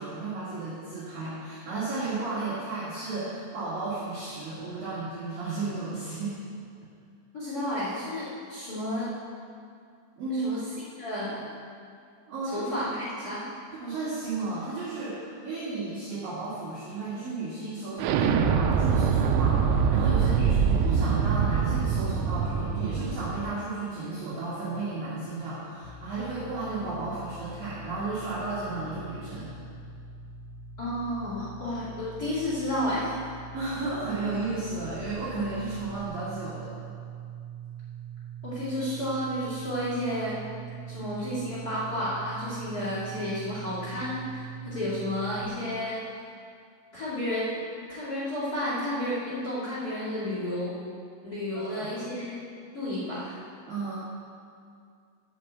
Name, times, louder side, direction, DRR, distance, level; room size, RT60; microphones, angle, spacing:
voice 1, 0.0-6.4 10.2-10.6 12.3-12.7 13.7-29.5 33.5-36.7 51.5-51.9 53.7-53.9, right 3 dB, 55° right, -11 dB, 3.3 m, -33 dB
voice 2, 7.3-9.1 10.3-10.6 11.0-11.4 12.5-13.5 30.8-33.2 38.4-40.4 40.9-46.0 46.9-47.6 47.9-50.7 51.2-52.4 52.7-53.4, left 1 dB, 35° left, -9 dB, 1.5 m, -31 dB
Explosion, 18.0-23.5, right 6 dB, 85° right, 3.2 m, -24 dB
sound 1, 25.8-45.5, right 5 dB, 85° left, 2.8 m, -42 dB
8.2 x 7.3 x 8.1 m, 2.3 s
omnidirectional pair, 5.8 m